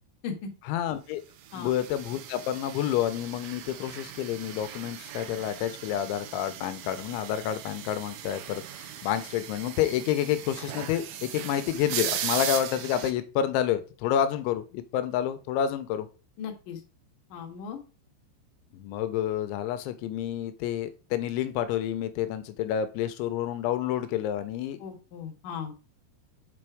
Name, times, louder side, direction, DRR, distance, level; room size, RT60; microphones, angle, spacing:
voice 1, 0.7-1.2 1.5-16.1 18.7-24.8, left 10 dB, 90° left, 10 dB, 3.1 m, -29 dB
sound 1, 1.5-13.1, right 10 dB, 80° right, 3.2 m, -38 dB
voice 2, 16.4-16.8 17.3-17.8 24.8-25.7, left 6 dB, 60° left, 2 dB, 2.5 m, -37 dB
7.6 x 4.3 x 4.9 m, 0.33 s
omnidirectional pair, 5.3 m